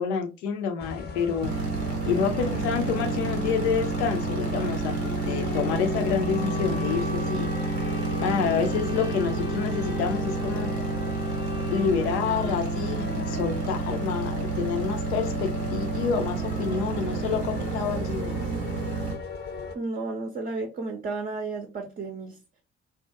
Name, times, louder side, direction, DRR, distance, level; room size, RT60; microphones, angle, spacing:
voice 1, 0.0-1.5 2.1-5.0 5.2-7.5 8.2-10.7 11.7-18.4, left 6 dB, 80° left, 0.5 m, -28 dB
sound 1, 0.8-19.8, left 5 dB, 30° left, 0.5 m, -36 dB
sound 2, 1.4-19.1, right 4 dB, 85° right, 0.6 m, -30 dB
voice 2, 18.4-18.8 19.7-22.4, right 3 dB, 30° right, 0.5 m, -33 dB
2.2 x 2.1 x 2.6 m
hypercardioid pair, 50°, 32 cm